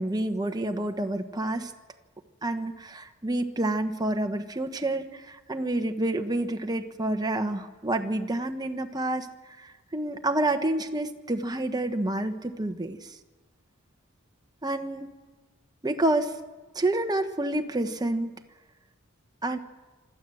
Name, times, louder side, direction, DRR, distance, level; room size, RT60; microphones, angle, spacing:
voice 1, 0.0-1.7 2.4-9.3 9.6-13.2 14.6-15.1 15.8-16.4 16.7-18.3 19.4-19.6, right 1 dB, 20° right, 6 dB, 1.1 m, -28 dB
25.5 x 13.0 x 7.8 m, 1.2 s
head